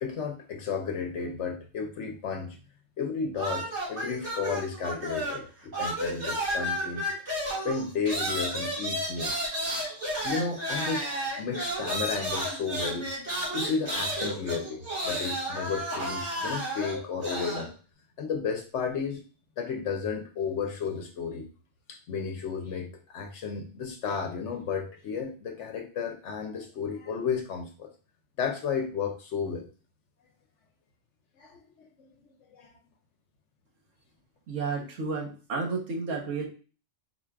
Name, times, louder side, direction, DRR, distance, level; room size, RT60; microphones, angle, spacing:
voice 1, 0.0-2.6 3.0-7.0 7.6-9.3 10.2-11.1 11.4-13.1 13.5-17.7 18.2-19.2 19.6-21.5 21.9-27.9 28.4-29.7 31.4-32.1 32.5-32.7, left 5 dB, 70° left, 4 dB, 0.9 m, -33 dB
sound 1, 3.4-5.5 5.7-17.7, right 1 dB, 65° right, 1.9 m, -32 dB
voice 2, 34.5-36.5, right 4 dB, 80° right, 0 dB, 1.5 m, -31 dB
4.3 x 2.4 x 4.4 m, 0.37 s
omnidirectional pair, 1.3 m